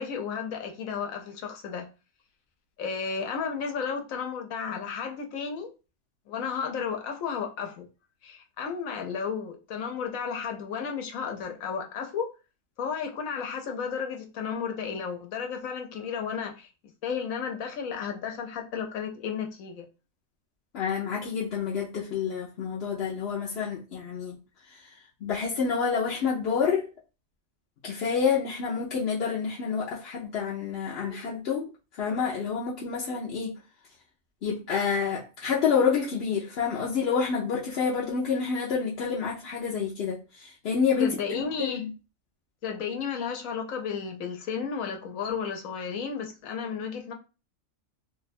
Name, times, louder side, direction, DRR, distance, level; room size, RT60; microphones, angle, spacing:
voice 1, 0.0-1.9 2.8-5.7 6.3-7.9 8.2-12.3 12.8-16.7 17.0-19.8 41.0-41.8 42.6-47.1, left 6 dB, 80° left, 1.1 m, -33 dB
voice 2, 20.7-24.4 24.7-24.9 25.2-26.9 27.8-31.7 32.0-33.6 34.4-41.9, left 6 dB, 60° left, 0.8 m, -28 dB
2.8 x 2.2 x 4.1 m
omnidirectional pair, 1.4 m